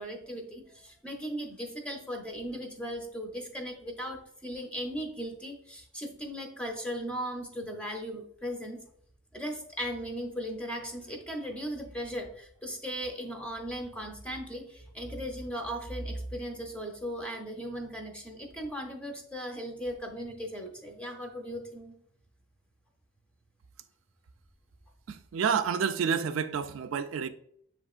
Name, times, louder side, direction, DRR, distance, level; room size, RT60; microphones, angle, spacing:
voice 1, 0.0-8.8 9.3-22.0, equal, 5° left, 0.7 m, -37 dB
voice 2, 25.1-27.3, right 6 dB, 75° right, 0.3 m, -29 dB
7.3 x 2.9 x 2.4 m
head